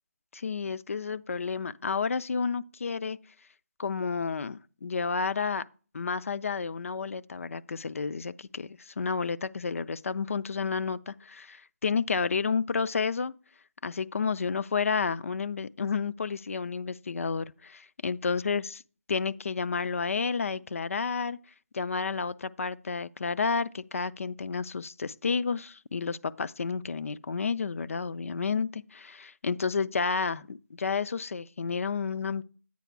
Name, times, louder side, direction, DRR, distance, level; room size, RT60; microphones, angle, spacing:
voice 1, 0.3-3.2 3.8-5.7 5.9-13.3 13.8-18.8 19.1-21.4 21.7-32.4, left 5 dB, 55° left, 0.4 m, -31 dB
8.2 x 5.0 x 4.5 m
figure-of-eight pair, 160°, 9 cm